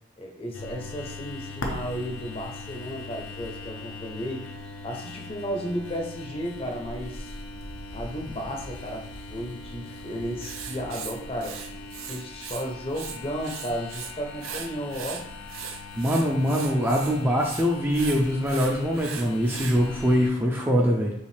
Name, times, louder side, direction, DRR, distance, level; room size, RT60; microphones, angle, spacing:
voice 1, 0.2-7.3 7.9-11.6 12.0-15.3, equal, 25° left, 1 dB, 0.7 m, -34 dB
sound 1, 0.5-20.3, left 2 dB, 75° left, 0.7 m, -40 dB
Writing, 10.4-12.6 12.9-14.1 14.4-19.8, right 8 dB, 75° right, 0.5 m, -39 dB
voice 2, 16.0-21.1, equal, 10° right, -1 dB, 0.4 m, -23 dB
5.5 x 2.5 x 3.3 m, 0.81 s
head